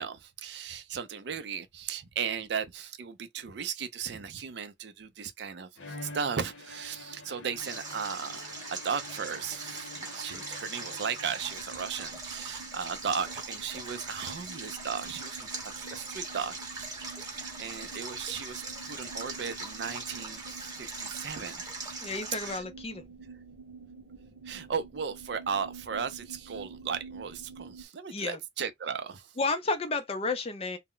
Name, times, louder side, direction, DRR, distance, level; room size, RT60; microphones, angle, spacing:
voice 1, 0.0-15.5 15.8-21.7 22.5-22.6 24.5-29.3, right 6 dB, 65° right, 0.4 m, -36 dB
Bowed string instrument, 5.8-11.8, left 2 dB, 90° left, 0.7 m, -47 dB
Stream, 7.6-22.6, right 3 dB, 20° right, 0.8 m, -41 dB
sound 1, 11.4-27.8, right 4 dB, 85° right, 0.9 m, -49 dB
voice 2, 22.0-23.0 28.1-28.4 29.4-30.8, left 3 dB, 30° left, 0.5 m, -31 dB
2.1 x 2.1 x 3.7 m
head